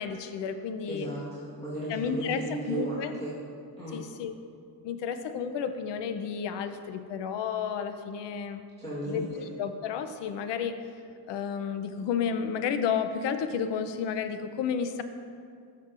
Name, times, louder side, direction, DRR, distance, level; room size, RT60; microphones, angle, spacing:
voice 1, 0.0-1.1 1.9-3.1 3.9-4.3 4.8-8.6 9.1-9.3 9.6-10.8 11.3-15.0, left 7 dB, 75° left, 9 dB, 0.6 m, -31 dB
voice 2, 0.9-3.3 3.8-4.0 8.8-9.4, right 2 dB, 15° left, -11 dB, 1.5 m, -35 dB
12.5 x 6.5 x 2.5 m, 2.3 s
cardioid pair, 150°, 42 cm